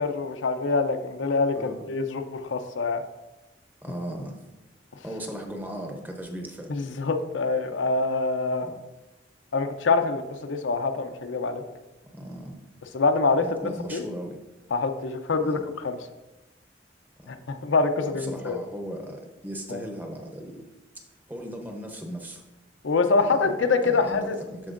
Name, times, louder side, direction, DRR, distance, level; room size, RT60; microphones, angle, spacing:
voice 1, 0.0-3.0 6.7-8.7 9.5-11.6 12.9-13.5 13.9-14.1 14.7-16.0 17.3-18.6 19.7-19.8 22.8-24.4, left 4 dB, 85° left, 7 dB, 0.6 m, -25 dB
voice 2, 3.8-4.4 5.0-6.7 8.6-8.8 12.1-12.6 13.4-14.4 15.4-15.6 17.2-17.3 18.1-20.6 21.3-22.4 23.2-23.4 23.8-24.7, equal, 10° right, 3 dB, 0.7 m, -37 dB
13.0 x 4.4 x 2.5 m, 1.1 s
head